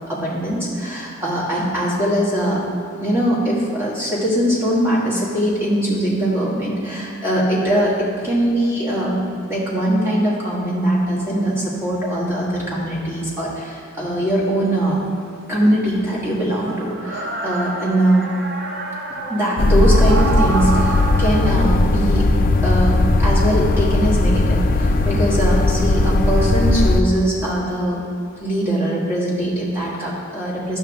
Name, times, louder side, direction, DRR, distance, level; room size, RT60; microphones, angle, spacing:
voice 1, 0.1-2.6 3.0-9.2 9.5-15.0 15.5-18.3 19.3-22.3 22.6-28.0 28.4-30.8, right 1 dB, 10° right, -7 dB, 1.6 m, -21 dB
sound 1, 13.3-13.4 15.8-21.5, right 3 dB, 50° right, 0.8 m, -28 dB
sound 2, 19.6-27.0, left 2 dB, 40° left, 0.4 m, -17 dB
9.7 x 6.3 x 3.5 m, 2.5 s
head